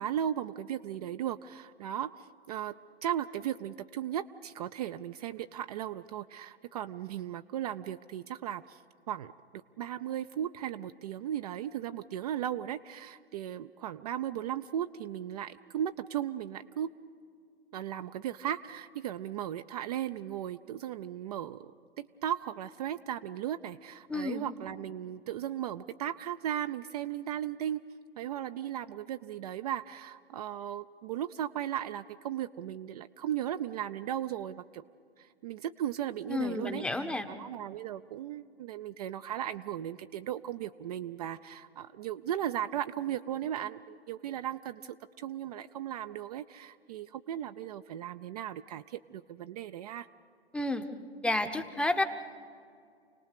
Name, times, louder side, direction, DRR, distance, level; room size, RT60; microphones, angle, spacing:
voice 1, 0.0-2.7 3.0-8.8 9.1-9.3 9.8-16.9 17.7-21.7 22.0-27.8 28.2-34.8 35.2-50.1, right 10 dB, 40° right, 9 dB, 0.5 m, -36 dB
voice 2, 24.1-24.5 36.3-37.3 50.5-50.8 51.2-52.0, left 2 dB, 5° left, 8 dB, 0.8 m, -30 dB
29.0 x 18.5 x 6.7 m, 2.3 s
figure-of-eight pair, 120°, 32 cm